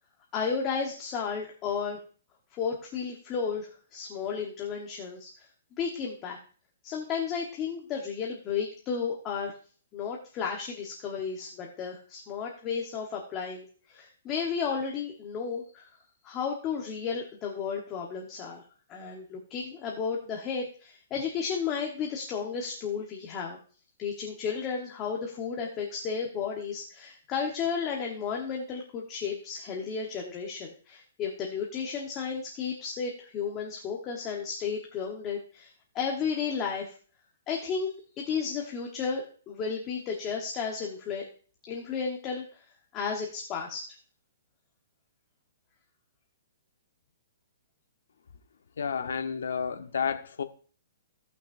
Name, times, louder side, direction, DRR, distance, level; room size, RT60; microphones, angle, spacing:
voice 1, 0.3-2.0 2.5-5.5 5.8-6.4 6.8-9.5 9.9-15.9 16.2-18.6 18.9-23.6 24.0-36.9 37.5-41.2 41.7-42.7 42.9-43.8, left 6 dB, 20° left, 0 dB, 1.1 m, -33 dB
voice 2, 48.8-50.4, left 6 dB, 85° left, 8 dB, 1.1 m, -31 dB
17.0 x 6.0 x 2.6 m, 0.41 s
hypercardioid pair, 165°, 0 cm